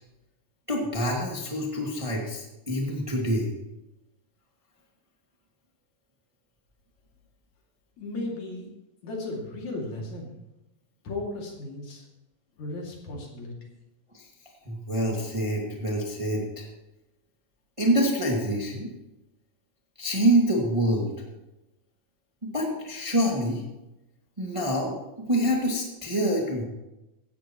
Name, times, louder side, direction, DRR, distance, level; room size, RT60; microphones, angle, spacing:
voice 1, 0.7-3.5 14.1-14.3 14.7-16.7 17.8-18.9 20.0-21.1 22.4-23.6 24.4-26.6, right 1 dB, 10° right, -2 dB, 1.8 m, -26 dB
voice 2, 8.0-8.7 9.0-10.3 11.0-12.0 12.6-13.8, left 2 dB, 65° left, -1 dB, 3.9 m, -35 dB
17.5 x 13.0 x 3.1 m, 0.98 s
omnidirectional pair, 3.6 m